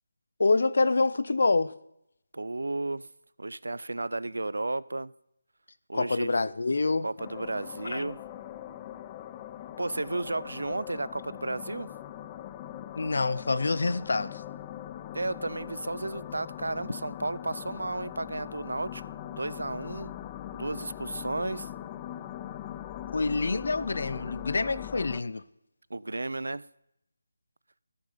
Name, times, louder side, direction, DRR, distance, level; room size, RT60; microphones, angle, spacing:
voice 1, 0.4-1.7 5.9-7.1 7.8-8.0 13.0-14.4 23.1-25.4, left 3 dB, 65° left, 16 dB, 0.6 m, -26 dB
voice 2, 2.3-3.1 3.4-5.1 5.9-6.3 7.0-8.2 9.8-11.9 15.1-19.0 19.3-20.1 20.5-21.7 25.9-26.7, right 2 dB, 85° right, 20 dB, 0.4 m, -33 dB
sound 1, 7.2-25.2, left 11 dB, 15° left, 0.3 m, -41 dB
13.0 x 6.6 x 5.6 m, 0.78 s
figure-of-eight pair, 165°, 0 cm